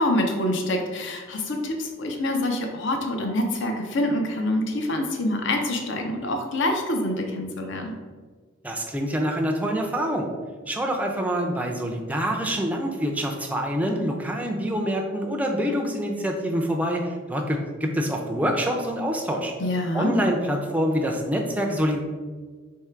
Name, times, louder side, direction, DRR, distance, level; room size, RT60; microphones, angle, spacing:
voice 1, 0.0-7.9 19.6-20.1, left 1 dB, 60° left, 3 dB, 0.6 m, -26 dB
voice 2, 8.6-10.3 10.7-19.5 19.9-22.0, equal, 5° right, 1 dB, 0.4 m, -26 dB
3.6 x 3.2 x 4.4 m, 1.5 s
head